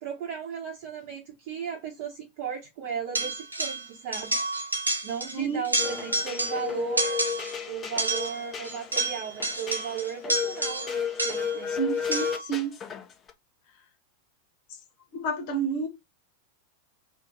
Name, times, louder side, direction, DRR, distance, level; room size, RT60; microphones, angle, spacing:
voice 1, 0.0-4.4 5.0-7.2 7.7-11.8, right 7 dB, 45° right, 0.9 m, -36 dB
sound 1, 3.2-3.9 4.1-5.4 5.6-6.7 7.0-7.6 8.0-11.6 12.1-12.5, right 2 dB, 85° right, 0.5 m, -30 dB
voice 2, 5.3-5.6 11.7-12.7 15.1-15.9, right 5 dB, 45° left, 1.1 m, -29 dB
sound 2, 5.8-13.3, left 7 dB, 25° left, 0.6 m, -33 dB
2.7 x 2.6 x 3.7 m
figure-of-eight pair, 90°, 0 cm